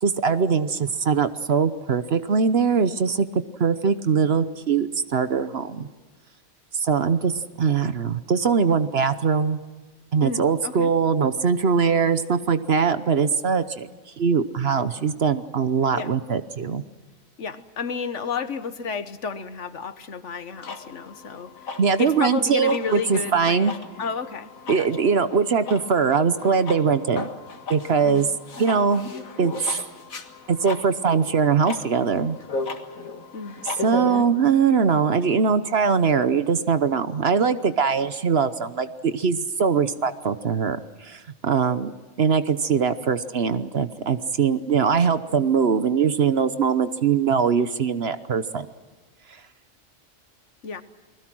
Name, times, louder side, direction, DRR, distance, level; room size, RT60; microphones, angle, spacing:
voice 1, 0.0-3.3 3.6-5.9 6.7-7.3 7.6-9.6 10.1-13.9 14.2-16.8 21.8-23.7 24.7-27.3 27.7-28.3 28.6-29.1 29.4-29.5 30.5-32.4 33.8-48.7, right 6 dB, 50° right, 12 dB, 1.1 m, -22 dB
voice 2, 10.2-10.9 15.9-16.1 17.4-21.7 22.0-23.7 24.0-24.5 24.7-24.9 28.0-28.2 33.3-33.6 50.6-50.8, left 5 dB, 60° left, 11 dB, 1.4 m, -31 dB
sound 1, 20.6-34.2, left 4 dB, 85° left, 2.2 m, -36 dB
30.0 x 20.5 x 6.2 m, 1.4 s
omnidirectional pair, 1.4 m